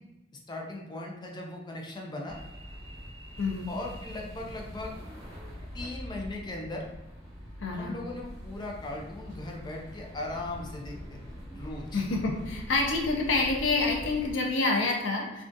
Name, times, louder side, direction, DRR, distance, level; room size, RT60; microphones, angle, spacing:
voice 1, 0.5-2.4 3.7-5.0 5.7-6.9 7.7-11.2 11.5-12.0, left 2 dB, 25° left, 0 dB, 0.5 m, -38 dB
sound 1, 2.3-14.4, equal, 20° right, 1.2 m, -43 dB
voice 2, 3.4-3.7 7.6-8.0 11.9-15.4, left 3 dB, 85° left, 0 dB, 0.6 m, -27 dB
3.6 x 2.4 x 2.6 m, 0.98 s
head